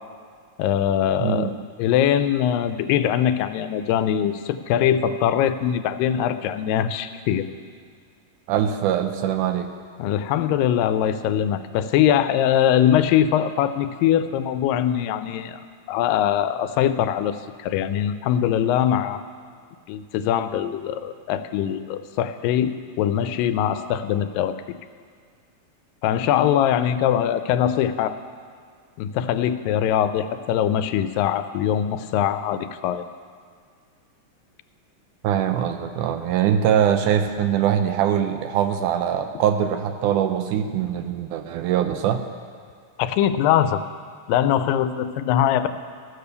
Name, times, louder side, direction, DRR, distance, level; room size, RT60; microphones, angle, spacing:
voice 1, 0.6-1.5 1.8-7.5 10.0-15.6 15.9-19.2 19.9-24.6 26.0-28.1 29.0-33.0 43.0-43.8 44.3-45.7, left 10 dB, 85° left, 11 dB, 2.2 m, -22 dB
voice 2, 1.2-1.5 8.5-9.7 35.2-42.2, right 9 dB, 80° right, 7 dB, 2.0 m, -22 dB
15.0 x 6.8 x 6.8 m, 2.1 s
omnidirectional pair, 3.9 m